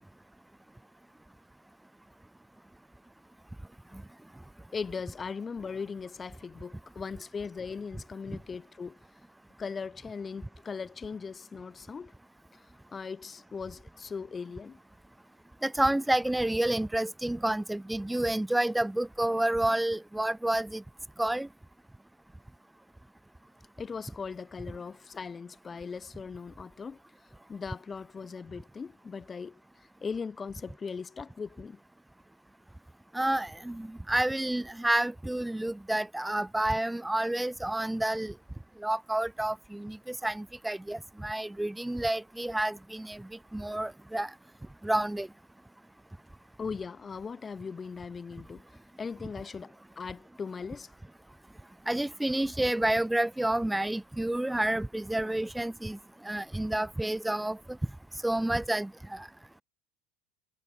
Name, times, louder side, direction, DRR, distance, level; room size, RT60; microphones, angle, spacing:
voice 1, 4.7-9.0 9.6-12.1 12.5-14.8 23.8-29.6 30.0-31.8 46.6-50.9, left 5 dB, 25° left, 1.7 m, -39 dB
voice 2, 15.6-20.8 21.2-21.5 33.1-38.3 38.8-44.3 44.8-45.3 51.9-56.0 56.2-57.6 58.2-59.3, right 1 dB, 5° right, 1.9 m, -29 dB
hypercardioid pair, 85°, 0 cm